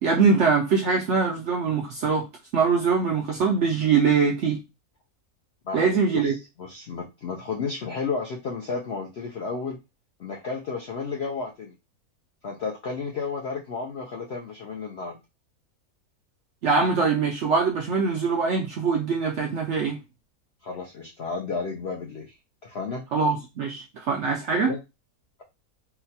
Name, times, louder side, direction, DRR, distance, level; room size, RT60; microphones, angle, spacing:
voice 1, 0.0-2.3 2.5-4.6 5.7-6.4 16.6-20.0 23.1-24.7, right 5 dB, 70° right, 0.6 m, -23 dB
voice 2, 5.6-9.8 10.2-11.7 12.4-15.2 20.6-22.3 22.6-23.1 24.6-24.8, left 4 dB, 70° left, 0.6 m, -32 dB
3.8 x 2.2 x 2.7 m
omnidirectional pair, 1.7 m